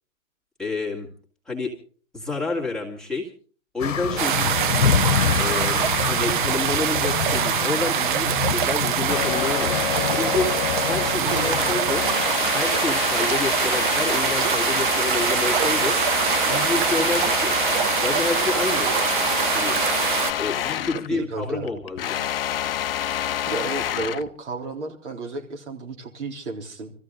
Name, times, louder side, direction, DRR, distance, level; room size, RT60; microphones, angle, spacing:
voice 1, 0.6-1.1 1.5-1.7 2.1-3.3 3.7-4.6 5.4-9.8 10.1-10.5 10.8-12.0 12.5-16.0 16.5-17.6 18.0-18.9 19.5-19.8 20.4-22.0, left 3 dB, ahead, -4 dB, 2.3 m, -29 dB
sound 1, 3.8-12.9, left 7 dB, 70° left, 1.1 m, -27 dB
sound 2, 4.2-20.3, right 9 dB, 40° right, 0.7 m, -24 dB
sound 3, 9.1-21.1 21.4-24.3, left 11 dB, 45° left, 0.7 m, -27 dB
voice 2, 11.1-11.6 20.9-21.7 23.5-26.9, right 3 dB, 60° right, 2 dB, 3.8 m, -32 dB
25.0 x 14.5 x 3.9 m, 0.42 s
hypercardioid pair, 135°, 40 cm